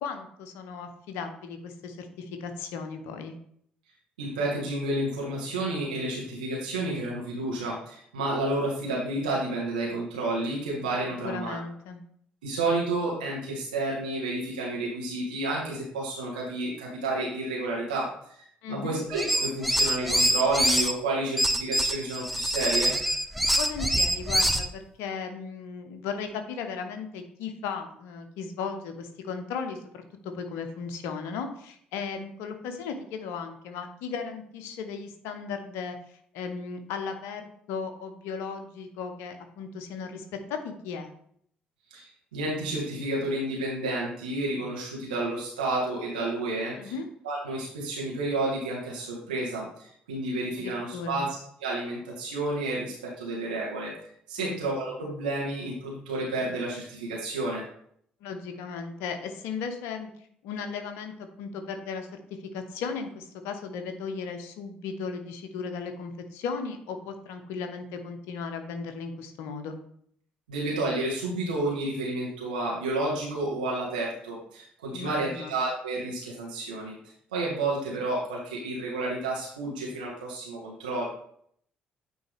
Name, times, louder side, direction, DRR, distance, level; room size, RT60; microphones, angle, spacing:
voice 1, 0.0-3.4 11.2-12.0 18.6-19.0 23.5-36.0 36.3-40.2 40.5-41.1 46.8-47.1 50.6-51.3 54.4-54.6 58.2-60.1 60.4-62.1 62.5-69.8 74.9-75.5, left 5 dB, 60° left, 6 dB, 0.8 m, -36 dB
voice 2, 4.2-11.6 12.4-18.1 18.7-22.9 41.9-42.0 42.3-46.9 47.2-51.3 51.6-53.9 54.3-57.6 70.5-76.9 77.3-81.0, right 2 dB, 75° right, -4 dB, 1.5 m, -30 dB
sound 1, 19.1-20.9 21.4-24.7, right 1 dB, ahead, 0.7 m, -25 dB
8.9 x 3.5 x 3.4 m, 0.66 s
figure-of-eight pair, 50°, 5 cm